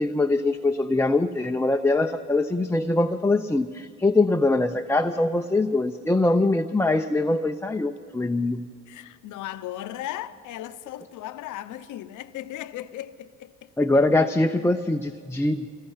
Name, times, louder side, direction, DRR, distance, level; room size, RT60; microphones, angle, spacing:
voice 1, 0.0-8.7 13.8-15.7, left 2 dB, 10° left, 0.6 m, -23 dB
voice 2, 8.9-13.7, left 13 dB, 90° left, 0.8 m, -36 dB
25.5 x 20.0 x 5.7 m
cardioid pair, 90°, 30 cm